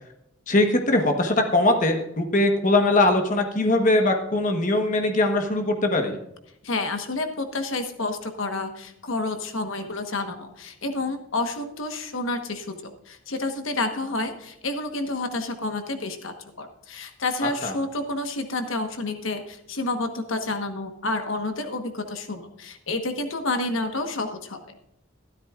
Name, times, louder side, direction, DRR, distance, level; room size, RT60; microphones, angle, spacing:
voice 1, 0.5-6.2 17.6-17.7, left 2 dB, 40° left, 4 dB, 1.2 m, -21 dB
voice 2, 6.6-24.6, left 2 dB, 75° left, 6 dB, 1.2 m, -29 dB
13.0 x 12.0 x 2.4 m, 0.81 s
head